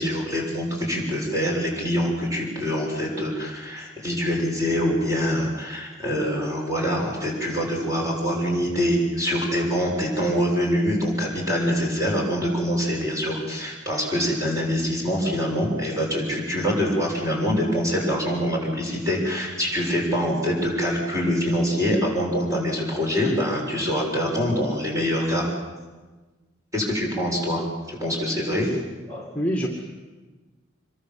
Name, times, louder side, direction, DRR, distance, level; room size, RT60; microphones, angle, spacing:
voice 1, 0.0-25.5 26.7-28.8, equal, 15° right, -1 dB, 7.0 m, -25 dB
voice 2, 29.1-29.7, equal, 10° left, 0 dB, 2.2 m, -26 dB
26.0 x 23.0 x 7.7 m, 1.3 s
head